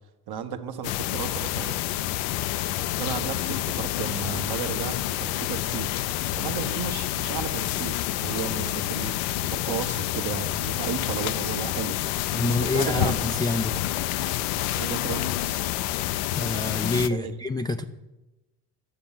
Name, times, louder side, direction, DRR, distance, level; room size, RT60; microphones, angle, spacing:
voice 1, 0.3-1.8 3.0-5.9 6.4-9.2 9.5-12.0 12.4-13.2 14.8-15.7 17.1-17.3, right 8 dB, 50° right, 1.3 m, -34 dB
sound 1, 0.8-17.1, left 14 dB, 70° left, 0.6 m, -28 dB
voice 2, 12.3-13.8 16.3-17.8, left 2 dB, 10° left, 0.4 m, -27 dB
10.5 x 7.0 x 5.7 m
hypercardioid pair, 60°, 49 cm